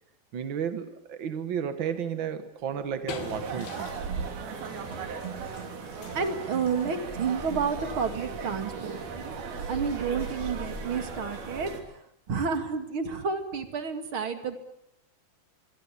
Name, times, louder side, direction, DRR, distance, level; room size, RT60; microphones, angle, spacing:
voice 1, 0.3-3.9 8.5-8.6, right 8 dB, 65° right, 10 dB, 1.2 m, -33 dB
sound 1, 2.6-10.7, left 8 dB, 90° left, 3.7 m, -48 dB
sound 2, 3.1-11.8, right 5 dB, 90° right, 4.8 m, -37 dB
voice 2, 6.1-9.3 9.7-11.7 12.3-14.6, right 5 dB, 40° right, 7 dB, 2.6 m, -30 dB
sound 3, 6.4-11.8, left 1 dB, 15° left, 7.5 m, -45 dB
25.5 x 23.5 x 8.5 m, 0.77 s
omnidirectional pair, 4.2 m